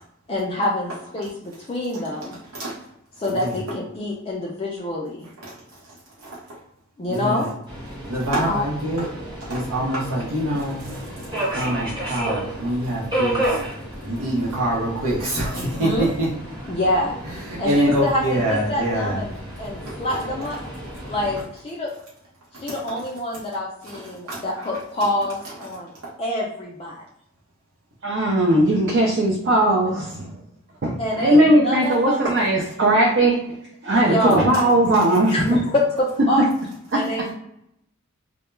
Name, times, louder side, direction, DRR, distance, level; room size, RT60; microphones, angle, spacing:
voice 1, 0.3-2.4 3.2-5.3 7.0-7.5 8.4-8.6 15.6-16.1 16.7-17.1 17.6-20.6 21.1-21.9 22.5-25.9 26.2-27.0 31.0-32.2 33.9-34.5 35.3-36.4 36.9-37.3, left 1 dB, 25° left, -4 dB, 0.3 m, -26 dB
voice 2, 7.1-7.5 8.1-9.1 9.4-11.0 11.4-13.6 14.0-16.3 17.5-19.2 19.9-20.0 22.5-22.7 23.9-24.0 24.3-24.7, right 1 dB, 85° right, -5 dB, 0.7 m, -25 dB
Subway metro underground, 7.7-21.4, right 1 dB, 20° right, 0.8 m, -32 dB
voice 3, 28.0-30.3 30.8-33.4 33.8-35.7, right 1 dB, 50° right, -2 dB, 0.4 m, -18 dB
2.2 x 2.1 x 3.1 m, 0.77 s
head